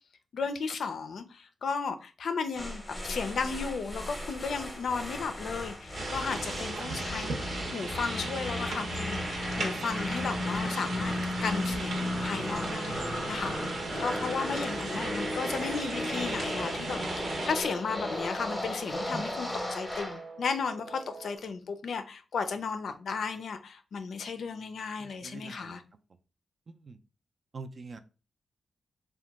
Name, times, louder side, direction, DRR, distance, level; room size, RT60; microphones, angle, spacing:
voice 1, 0.3-7.4 7.7-11.1 11.4-13.0 13.3-25.8, left 5 dB, 70° left, 0.4 m, -34 dB
sound 1, 2.6-20.2, left 1 dB, 5° left, 0.7 m, -35 dB
sound 2, 5.9-17.5, right 3 dB, 65° right, 0.7 m, -37 dB
voice 2, 9.7-10.0 12.9-13.3 19.1-19.2 25.0-25.8 26.7-27.0 27.5-28.0, right 3 dB, 45° right, 0.3 m, -45 dB
Guitar, 11.9-21.4, right 3 dB, 85° right, 1.0 m, -48 dB
2.8 x 2.2 x 3.4 m
wide cardioid pair, 105°, 0 cm